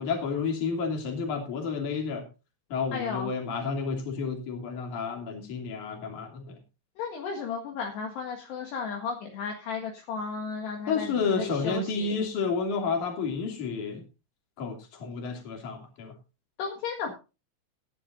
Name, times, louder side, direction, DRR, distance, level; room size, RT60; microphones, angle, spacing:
voice 1, 0.0-2.3 2.7-6.6 10.9-14.0 14.6-16.1, left 5 dB, 45° left, 3 dB, 3.9 m, -30 dB
voice 2, 2.9-3.3 7.0-12.2 16.6-17.1, left 5 dB, 65° left, 1 dB, 3.6 m, -34 dB
18.5 x 11.0 x 2.6 m, 0.30 s
omnidirectional pair, 5.6 m